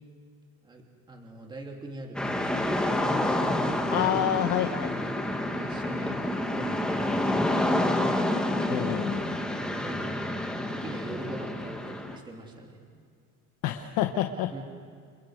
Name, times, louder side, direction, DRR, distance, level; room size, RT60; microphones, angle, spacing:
voice 1, 1.1-2.8 3.9-4.1 5.4-7.6 9.6-10.1 10.7-12.9 14.5-14.6, right 2 dB, 15° right, 1 dB, 2.8 m, -42 dB
sound 1, 2.2-12.2, left 1 dB, ahead, 1.7 m, -28 dB
voice 2, 3.9-4.9 8.7-9.4 13.6-14.6, left 11 dB, 75° left, 6 dB, 1.3 m, -28 dB
30.0 x 29.5 x 4.9 m, 2.1 s
cardioid pair, 165°, 32 cm